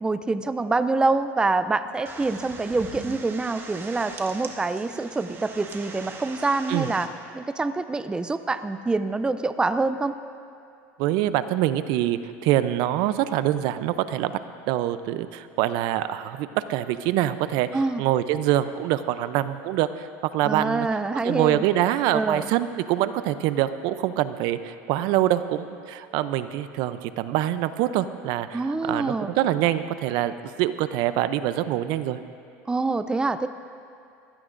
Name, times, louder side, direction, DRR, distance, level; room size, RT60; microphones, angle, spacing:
voice 1, 0.0-10.1 17.7-18.0 20.4-21.6 22.1-22.5 28.5-29.3 32.7-33.5, right 3 dB, 10° right, 11 dB, 0.4 m, -26 dB
sound 1, 2.1-7.1, right 4 dB, 30° right, 1.7 m, -41 dB
voice 2, 11.0-14.3 14.7-17.7 18.0-20.1 20.3-20.9 21.2-30.3 30.6-32.2, right 13 dB, 65° right, 12 dB, 0.6 m, -25 dB
22.0 x 16.0 x 2.6 m, 2.5 s
supercardioid pair, 105°, 8 cm